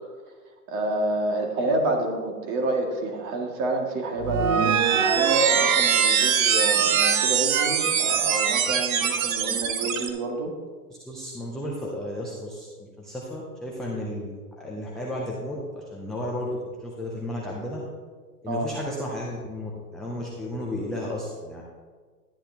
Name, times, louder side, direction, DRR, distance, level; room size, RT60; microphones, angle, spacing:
voice 1, 0.7-10.5 18.5-18.7, right 2 dB, 35° right, 1 dB, 2.0 m, -28 dB
sound 1, 4.2-10.1, right 7 dB, 60° right, 1.1 m, -22 dB
voice 2, 11.0-17.8 18.4-21.6, left 1 dB, ahead, -5 dB, 0.3 m, -33 dB
12.5 x 10.0 x 2.8 m, 1.5 s
hypercardioid pair, 120°, 46 cm